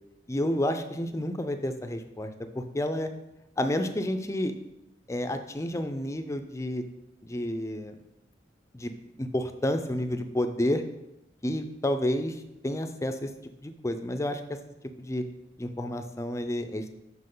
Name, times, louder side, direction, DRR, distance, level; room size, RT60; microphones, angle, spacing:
voice 1, 0.3-3.1 3.6-4.5 5.1-6.8 7.2-7.9 8.7-8.9 9.2-10.8 11.4-13.3 13.6-14.4 15.0-15.2 15.6-16.9, left 1 dB, 15° left, 7 dB, 0.4 m, -30 dB
7.6 x 5.9 x 3.8 m, 0.90 s
head